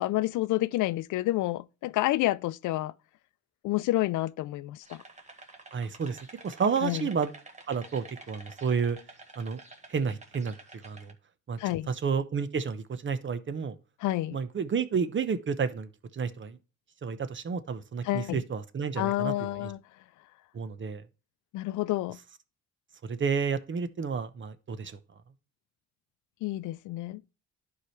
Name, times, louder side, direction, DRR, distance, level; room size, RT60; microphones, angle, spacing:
voice 1, 0.0-2.9 3.6-5.0 6.8-7.1 11.6-11.9 14.0-14.4 18.0-18.4 19.0-19.8 21.5-22.2 26.4-27.2, left 16 dB, 80° left, 0.5 m, -29 dB
sound 1, 4.8-11.1, right 2 dB, 25° right, 1.8 m, -50 dB
voice 2, 5.7-6.2 6.4-7.3 7.7-9.0 9.4-9.6 9.9-11.1 11.5-11.6 11.9-13.7 14.3-16.6 17.0-19.7 20.5-21.0 23.0-25.0, right 6 dB, 40° right, 0.9 m, -31 dB
11.5 x 4.8 x 3.1 m
cardioid pair, 90°, 30 cm